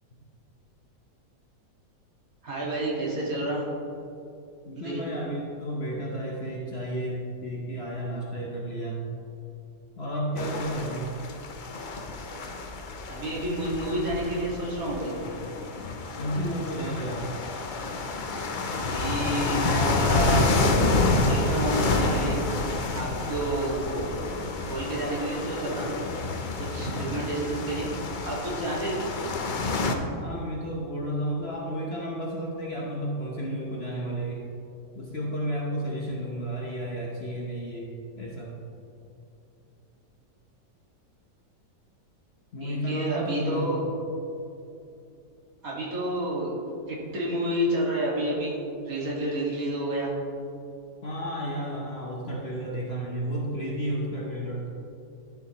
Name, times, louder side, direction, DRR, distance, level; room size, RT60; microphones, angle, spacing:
voice 1, 2.4-3.6 4.8-5.0 13.1-15.1 18.7-20.5 21.3-22.5 22.9-24.1 24.7-25.9 26.6-27.9 28.2-29.1 42.6-43.8 45.6-46.5 46.9-48.6 48.9-50.1, right 1 dB, 55° right, -5 dB, 2.2 m, -29 dB
voice 2, 4.6-9.0 10.0-11.2 16.2-17.3 26.9-27.1 30.2-34.5 34.9-38.6 42.5-43.9 51.0-54.7, right 1 dB, 45° left, -2 dB, 1.0 m, -32 dB
sound 1, 10.4-29.9, left 3 dB, 85° left, 0.4 m, -28 dB
11.5 x 7.7 x 2.9 m, 2.7 s
omnidirectional pair, 1.8 m